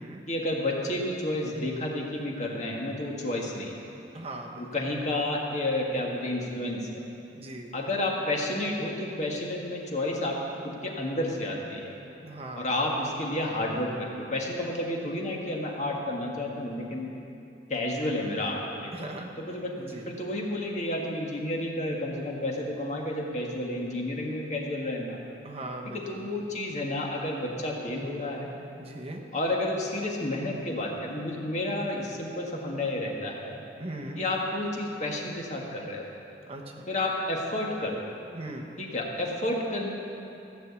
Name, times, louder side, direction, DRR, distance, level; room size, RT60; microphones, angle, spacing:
voice 1, 0.3-3.8 4.6-7.0 7.7-10.4 10.6-11.9 12.5-17.1 17.7-19.1 19.4-25.2 25.9-28.5 29.3-33.6 34.2-36.1 36.9-38.1 38.8-39.9, left 1 dB, 40° left, -1 dB, 1.7 m, -31 dB
voice 2, 4.1-4.7 7.3-7.8 12.2-12.7 18.9-19.3 19.8-20.2 25.4-26.3 28.8-29.2 33.8-34.2 36.5-36.8 38.3-38.7, right 1 dB, 35° right, 1 dB, 1.1 m, -39 dB
15.0 x 6.1 x 8.3 m, 2.8 s
head